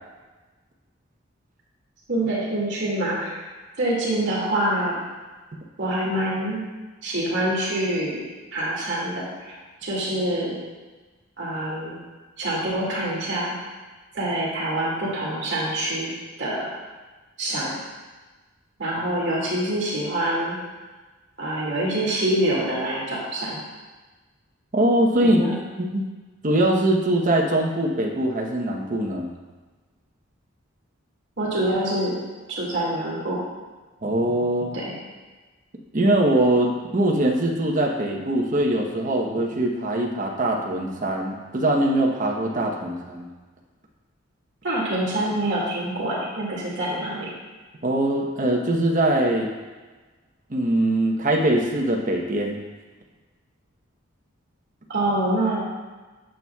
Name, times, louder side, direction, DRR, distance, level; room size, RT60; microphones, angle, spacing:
voice 1, 2.1-3.3 3.8-5.0 5.8-6.6 7.0-8.2 8.5-9.6 9.8-10.6 11.4-12.0 12.4-13.6 14.1-16.1 16.4-16.7 17.4-17.8 18.8-20.6 21.4-23.6 25.2-25.5 31.4-32.1 32.5-33.4 34.7-35.0 44.6-47.3 54.9-55.6, right 1 dB, 60° right, -6 dB, 2.1 m, -25 dB
voice 2, 24.7-25.4 25.8-26.0 26.4-29.3 34.0-34.7 35.9-43.3 47.8-49.5 50.5-52.6, right 1 dB, 40° right, 0 dB, 0.9 m, -22 dB
8.9 x 7.1 x 2.3 m, 1.3 s
head